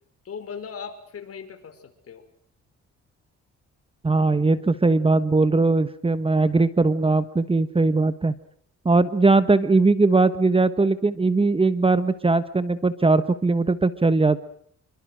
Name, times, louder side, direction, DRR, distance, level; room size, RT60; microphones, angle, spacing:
voice 1, 0.2-2.2, left 6 dB, 50° left, 7 dB, 5.4 m, -38 dB
voice 2, 4.0-8.3 8.8-14.4, right 3 dB, 20° right, 12 dB, 1.3 m, -20 dB
27.0 x 24.5 x 6.4 m, 0.63 s
cardioid pair, 90°, 30 cm